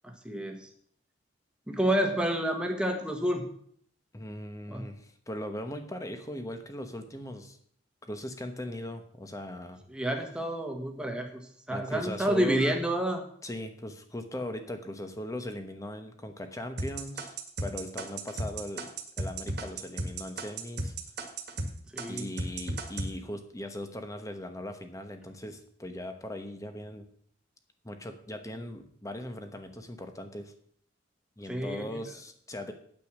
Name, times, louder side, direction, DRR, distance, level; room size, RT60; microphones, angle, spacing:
voice 1, 0.0-0.7 1.7-3.4 4.7-4.9 9.9-13.2 21.9-22.3 31.5-32.0, right 1 dB, 5° right, 3 dB, 1.5 m, -29 dB
voice 2, 4.1-7.6 8.1-9.8 11.7-12.7 13.4-18.9 19.2-20.9 22.1-27.1 27.8-30.5 31.4-32.7, left 1 dB, 15° left, 7 dB, 1.1 m, -39 dB
sound 1, 16.8-21.7 22.0-23.1, right 2 dB, 55° right, 1.7 m, -34 dB
9.2 x 8.5 x 6.2 m, 0.62 s
head